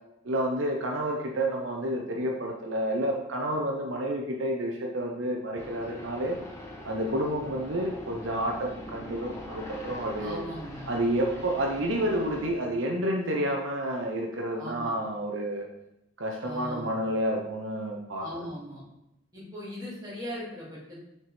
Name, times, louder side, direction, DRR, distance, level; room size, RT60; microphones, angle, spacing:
voice 1, 0.2-6.4 6.8-10.4 10.9-15.7 16.2-18.5, right 1 dB, 80° right, 0 dB, 0.8 m, -30 dB
sound 1, 5.5-12.5, equal, 15° left, 0.8 m, -43 dB
voice 2, 10.2-10.9 14.6-14.9 16.4-16.9 18.2-18.8 19.3-21.1, equal, 20° right, -7 dB, 2.4 m, -39 dB
6.1 x 4.5 x 3.5 m, 0.83 s
head